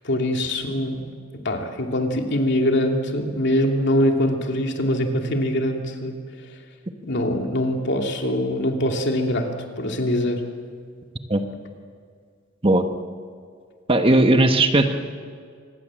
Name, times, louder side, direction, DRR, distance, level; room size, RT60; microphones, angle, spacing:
voice 1, 0.0-6.2 7.0-10.4, left 1 dB, 55° left, 3 dB, 2.7 m, -23 dB
voice 2, 13.9-15.0, right 2 dB, 25° right, 6 dB, 1.3 m, -17 dB
25.5 x 20.5 x 7.6 m, 2.1 s
head